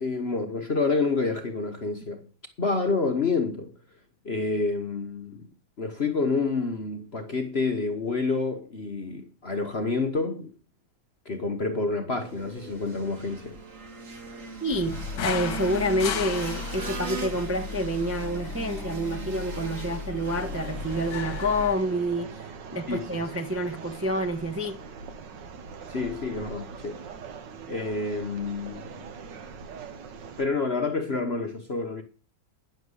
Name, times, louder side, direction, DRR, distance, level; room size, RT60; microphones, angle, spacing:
voice 1, 0.0-2.2 2.6-3.7 4.2-5.5 5.8-10.5 11.2-13.6 22.9-23.1 25.9-27.0 27.7-29.1 30.4-32.0, left 4 dB, 40° left, 1.1 m, -28 dB
sound 1, 12.2-22.0, right 4 dB, 40° right, 2.0 m, -39 dB
voice 2, 14.6-22.3 22.7-24.8, equal, 10° right, 0.8 m, -28 dB
sound 2, 14.7-21.8, left 6 dB, 60° left, 1.7 m, -35 dB
sound 3, 20.3-30.5, right 6 dB, 65° right, 1.6 m, -42 dB
10.5 x 6.9 x 7.9 m
omnidirectional pair, 2.2 m